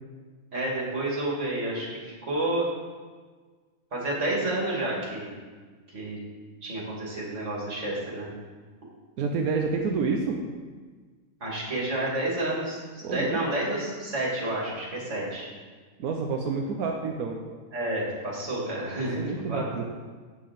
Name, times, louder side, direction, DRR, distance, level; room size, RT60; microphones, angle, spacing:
voice 1, 0.5-2.6 3.9-5.3 5.9-6.2 6.6-8.3 11.4-15.5 17.7-19.7, right 1 dB, 55° right, -4 dB, 2.9 m, -30 dB
voice 2, 9.2-10.4 13.0-13.4 16.0-17.4 19.2-19.8, right 4 dB, 85° right, 2 dB, 1.2 m, -28 dB
8.7 x 7.2 x 5.3 m, 1.5 s
omnidirectional pair, 1.5 m